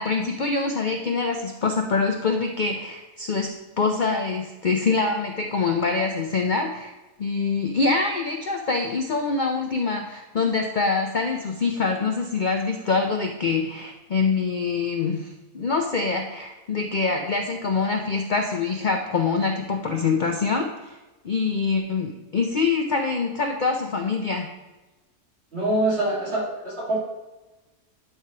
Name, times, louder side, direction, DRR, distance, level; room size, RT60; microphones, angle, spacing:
voice 1, 0.0-6.9 7.2-21.0 21.2-24.5, left 4 dB, 70° left, 3 dB, 0.4 m, -25 dB
voice 2, 25.5-27.0, right 1 dB, 45° right, -7 dB, 2.2 m, -24 dB
11.0 x 4.7 x 2.9 m, 1.1 s
omnidirectional pair, 1.6 m